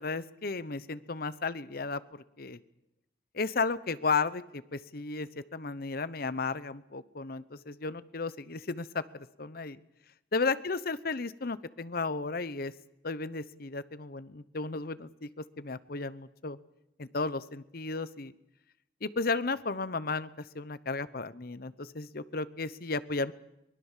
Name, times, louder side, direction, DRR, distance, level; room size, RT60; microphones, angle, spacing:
voice 1, 0.0-2.6 3.3-9.8 10.3-12.7 13.0-16.6 17.0-18.3 19.0-23.3, left 4 dB, 55° left, 16 dB, 0.9 m, -34 dB
23.5 x 21.0 x 7.4 m, 0.85 s
head